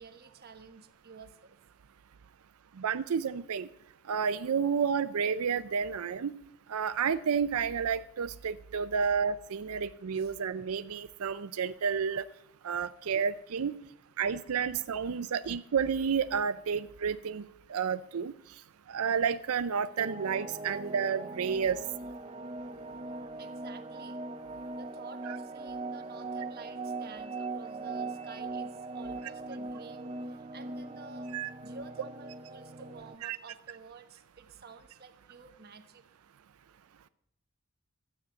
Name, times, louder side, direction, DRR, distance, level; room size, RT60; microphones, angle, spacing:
voice 1, 0.0-1.6 10.1-10.3 14.3-14.4 15.2-15.3 23.0-24.2 24.8-31.3 31.6-36.0, right 4 dB, 45° right, 7 dB, 1.1 m, -51 dB
voice 2, 2.8-3.7 4.1-6.3 6.7-12.2 12.6-13.7 14.2-17.4 17.7-18.3 18.9-21.8 25.3-25.4 31.3-31.5 33.2-33.4, right 6 dB, 85° right, 12 dB, 0.5 m, -30 dB
sound 1, 20.0-33.2, right 3 dB, 25° right, 0.5 m, -40 dB
13.0 x 8.8 x 7.0 m, 0.78 s
head